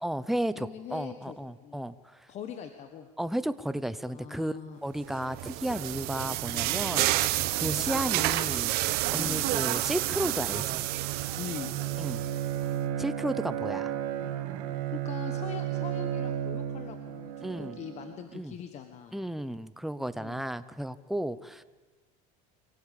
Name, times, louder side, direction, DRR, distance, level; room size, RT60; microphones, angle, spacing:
voice 1, 0.0-2.3 3.2-4.6 4.8-8.7 9.1-10.9 12.0-12.2 13.0-13.9 17.4-17.8 18.3-18.5 19.1-21.6, right 1 dB, ahead, 13 dB, 0.7 m, -33 dB
voice 2, 0.5-1.4 1.6-1.9 2.3-3.1 4.1-4.8 7.7-7.9 9.1-9.5 11.4-11.7 14.9-19.2 20.2-20.4, left 8 dB, 35° left, 7 dB, 1.4 m, -42 dB
sound 1, 5.1-12.6, right 17 dB, 55° right, 1.1 m, -30 dB
Bowed string instrument, 10.4-18.2, right 10 dB, 85° right, 2.5 m, -34 dB
24.0 x 17.5 x 8.4 m, 1.3 s
cardioid pair, 150°, 19 cm